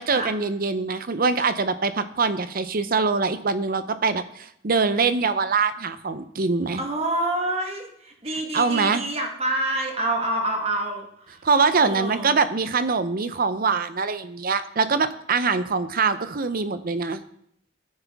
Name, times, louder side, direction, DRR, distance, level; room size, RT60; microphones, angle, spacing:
voice 1, 0.0-6.8 8.5-9.0 11.4-17.2, right 4 dB, 50° right, 12 dB, 0.7 m, -23 dB
voice 2, 6.8-11.4 11.8-12.4, right 1 dB, 35° right, 2 dB, 1.5 m, -27 dB
12.0 x 9.7 x 3.6 m, 0.70 s
head